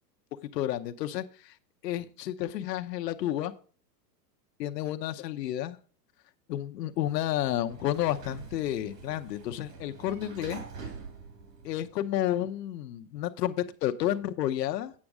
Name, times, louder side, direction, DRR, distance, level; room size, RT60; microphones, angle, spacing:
voice 1, 0.5-1.6 1.8-3.5 4.6-5.8 6.5-10.6 11.6-14.9, left 12 dB, 80° left, 8 dB, 0.9 m, -31 dB
Sliding door, 7.0-12.2, right 5 dB, 75° right, 2.6 m, -45 dB
8.7 x 6.3 x 4.8 m, 0.40 s
supercardioid pair, 175°, 48 cm